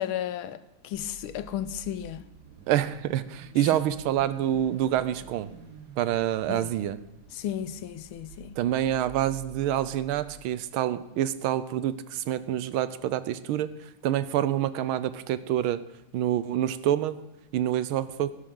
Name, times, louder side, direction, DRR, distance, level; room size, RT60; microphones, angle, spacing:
voice 1, 0.0-2.2 3.6-3.8 6.5-6.7 7.3-8.5, left 11 dB, 80° left, 1.5 m, -34 dB
Car / Idling / Accelerating revving vroom, 0.9-10.4, right 6 dB, 55° right, 1.6 m, -49 dB
voice 2, 2.7-5.5 6.0-7.0 8.6-15.8 16.1-17.2 17.5-18.3, right 11 dB, 80° right, 1.5 m, -27 dB
15.5 x 11.5 x 3.8 m
omnidirectional pair, 2.3 m